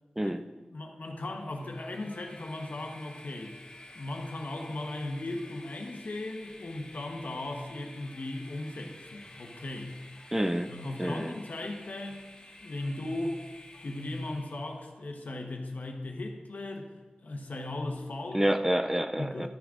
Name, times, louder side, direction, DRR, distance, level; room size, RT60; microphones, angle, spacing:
voice 1, 0.7-3.5 3.9-9.9 10.7-12.2 12.6-13.4 13.8-16.9 17.2-18.4 19.1-19.5, left 2 dB, 70° left, 3 dB, 1.2 m, -37 dB
Train, 1.4-14.9, left 1 dB, 35° left, 1.5 m, -51 dB
voice 2, 10.3-10.7 11.0-11.3 18.3-19.5, right 1 dB, 10° right, 8 dB, 0.4 m, -28 dB
13.0 x 6.1 x 3.8 m, 1.3 s
wide cardioid pair, 80°, 3 cm